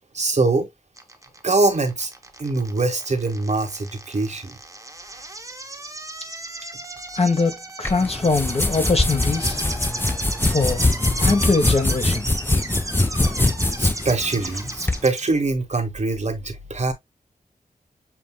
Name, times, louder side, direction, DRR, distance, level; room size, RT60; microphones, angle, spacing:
voice 1, 0.1-0.7 1.4-2.1 2.4-4.6 13.8-16.9, right 3 dB, 50° right, 1.1 m, -23 dB
sound 1, 1.0-15.3, right 2 dB, 20° right, 1.0 m, -35 dB
voice 2, 7.1-9.6 10.4-10.8 11.2-12.3, left 3 dB, 40° left, 1.1 m, -22 dB
sound 2, 7.8-15.0, left 2 dB, 15° left, 0.6 m, -23 dB
7.1 x 2.7 x 2.2 m
wide cardioid pair, 65°, 15 cm